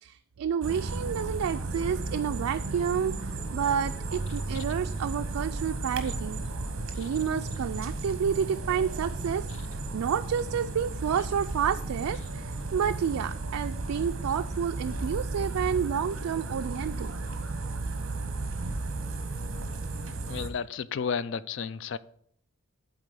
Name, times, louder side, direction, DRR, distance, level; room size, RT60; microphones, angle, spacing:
voice 1, 0.0-6.4 7.0-17.1, right 7 dB, 80° right, 0.3 m, -30 dB
sound 1, 0.6-20.5, right 3 dB, 65° right, 0.9 m, -34 dB
voice 2, 20.3-22.0, left 6 dB, 55° left, 0.3 m, -33 dB
8.0 x 4.0 x 6.8 m
head